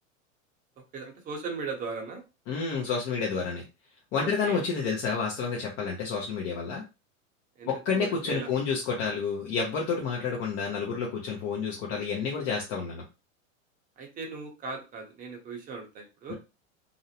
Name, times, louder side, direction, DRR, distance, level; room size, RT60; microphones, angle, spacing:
voice 1, 0.9-2.2 4.1-4.6 7.6-8.5 14.0-16.3, right 4 dB, 20° right, 1 dB, 0.6 m, -38 dB
voice 2, 2.5-3.6 4.1-6.8 7.7-13.0, left 5 dB, 35° left, -2 dB, 0.6 m, -29 dB
2.5 x 2.0 x 2.7 m, 0.28 s
supercardioid pair, 135°, 40 cm